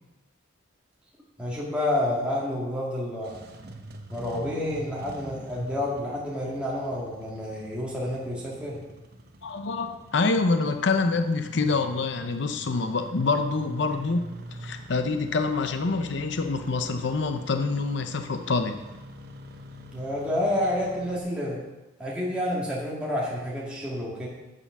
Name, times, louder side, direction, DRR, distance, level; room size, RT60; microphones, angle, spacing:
voice 1, 1.4-3.4 4.1-8.8 19.9-21.6 22.0-24.3, left 1 dB, 5° right, -6 dB, 1.8 m, -29 dB
Engine starting, 3.1-21.2, right 1 dB, 55° right, 1.0 m, -45 dB
voice 2, 9.4-14.3 14.6-18.8, left 3 dB, 65° left, 8 dB, 0.6 m, -26 dB
9.0 x 6.8 x 6.0 m, 1.1 s
head